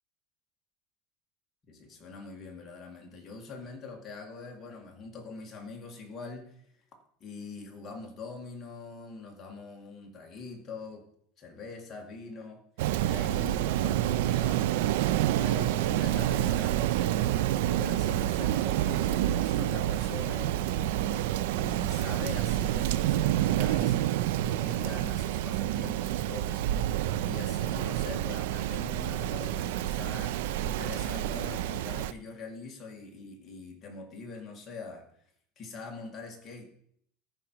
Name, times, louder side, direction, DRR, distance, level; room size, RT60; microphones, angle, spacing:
voice 1, 1.7-6.6 7.2-11.0 11.4-12.6 13.0-14.7 15.4-24.0 24.4-26.6 27.2-35.0 35.6-36.6, left 4 dB, 20° left, 0 dB, 1.9 m, -43 dB
Rain, 12.8-32.1, right 13 dB, 75° right, 0.4 m, -28 dB
14.0 x 5.2 x 4.6 m, 0.66 s
supercardioid pair, 165°, 0 cm